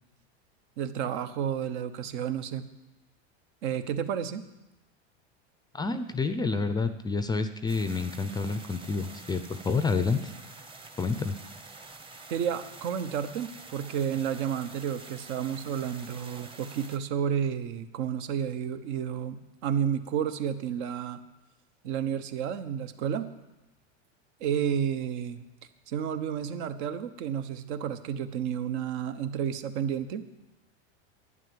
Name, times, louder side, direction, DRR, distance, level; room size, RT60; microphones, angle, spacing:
voice 1, 0.8-2.6 3.6-4.4 12.3-21.2 21.8-23.3 24.4-25.4 25.9-30.2, right 8 dB, 60° right, 10 dB, 1.2 m, -31 dB
voice 2, 5.7-10.3 11.0-11.3, left 4 dB, 10° left, 10 dB, 0.5 m, -29 dB
sound 1, 7.7-17.0, right 3 dB, 15° right, 1.0 m, -47 dB
11.5 x 9.5 x 7.7 m, 0.99 s
supercardioid pair, 130°, 36 cm